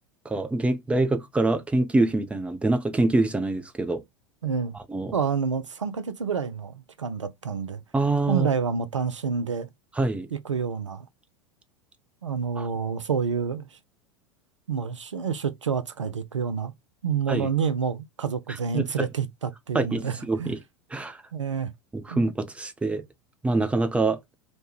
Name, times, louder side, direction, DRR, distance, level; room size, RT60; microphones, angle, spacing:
voice 1, 0.3-4.0 4.9-5.1 7.9-8.5 10.0-10.3 12.6-12.7 17.3-17.5 18.7-19.1 19.7-20.6 20.9-21.2 21.9-23.0 23.4-24.2, right 2 dB, 10° right, 0.5 m, -25 dB
voice 2, 4.4-4.8 5.1-7.8 8.3-9.7 10.3-11.1 12.2-13.8 14.7-16.7 17.0-20.5 21.3-21.7 22.1-22.2, right 6 dB, 80° right, 0.5 m, -28 dB
3.1 x 2.2 x 3.2 m
figure-of-eight pair, 80°, 15 cm